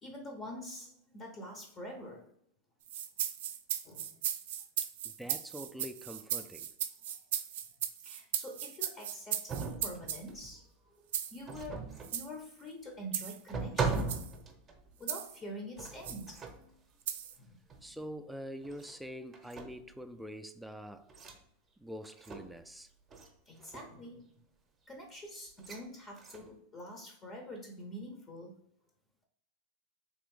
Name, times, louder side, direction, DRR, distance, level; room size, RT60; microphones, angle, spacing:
voice 1, 0.0-2.3 3.8-4.2 7.1-7.2 8.0-14.4 15.0-16.4 17.4-17.6 23.5-24.3 24.9-28.6, equal, 30° left, 0.8 m, -46 dB
sound 1, 2.9-10.2 11.1-11.4 12.0-12.3 13.1-13.4 13.9-14.3 15.1-15.4 16.0-16.2 17.1-17.4, right 10 dB, 75° right, 0.3 m, -37 dB
voice 2, 5.0-6.7 17.8-21.1 21.8-22.9, equal, ahead, 0.3 m, -45 dB
sound 2, 9.5-10.6 11.4-12.2 13.0-13.1 13.5-15.0 15.8-16.7 17.7-17.9 18.6-19.0 19.3-20.0 21.1-21.4 22.0-22.7 23.1-23.3 23.6-24.0 25.6-25.8 26.2-26.6, right 4 dB, 25° right, 0.7 m, -39 dB
3.6 x 2.5 x 3.5 m
hypercardioid pair, 110°, 0 cm